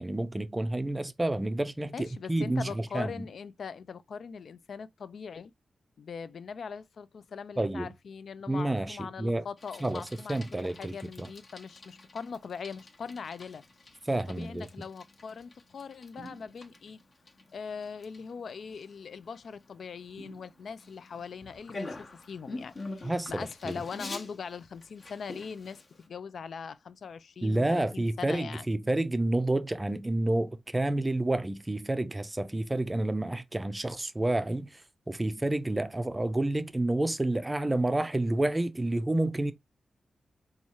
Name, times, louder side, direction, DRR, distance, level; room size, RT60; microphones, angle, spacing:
voice 1, 0.0-3.3 7.6-7.9 8.5-9.5 9.8-10.0 10.3-11.3 14.1-14.7 23.0-23.7 27.4-39.5, right 1 dB, 15° right, 0.4 m, -29 dB
voice 2, 1.9-5.5 6.0-13.6 14.3-17.0 17.5-28.7, left 6 dB, 65° left, 0.3 m, -41 dB
Bicycle, 9.6-26.1, left 2 dB, 40° left, 0.7 m, -47 dB
sound 1, 16.2-17.0 20.2-21.1, right 3 dB, 75° right, 0.5 m, -52 dB
4.1 x 2.4 x 2.9 m
wide cardioid pair, 130°, 0 cm